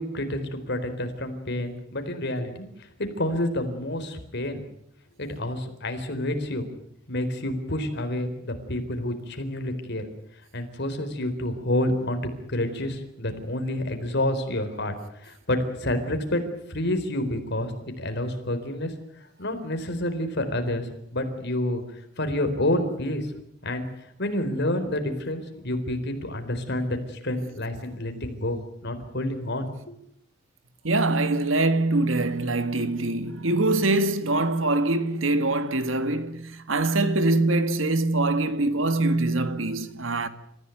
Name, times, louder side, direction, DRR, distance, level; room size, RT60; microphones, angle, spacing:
voice 1, 0.0-4.6 5.2-6.7 7.1-10.1 10.5-14.9 15.2-16.4 16.7-17.7 18.0-18.9 19.4-21.8 22.2-23.3 23.6-23.9 24.2-29.9, left 1 dB, 60° left, 4.2 m, -29 dB
voice 2, 30.8-40.3, right 2 dB, 80° right, 1.9 m, -24 dB
28.5 x 15.5 x 9.3 m
head